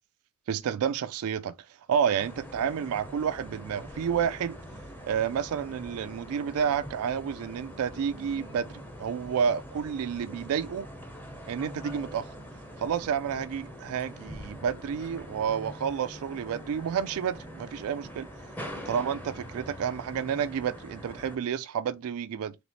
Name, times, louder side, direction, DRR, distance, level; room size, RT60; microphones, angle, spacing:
voice 1, 0.5-1.5 1.9-4.6 5.0-10.9 11.5-12.3 12.8-18.3 18.9-22.5, right 7 dB, 70° right, 0.3 m, -30 dB
sound 1, 2.2-21.3, equal, 10° left, 0.8 m, -43 dB
4.0 x 3.3 x 3.1 m
head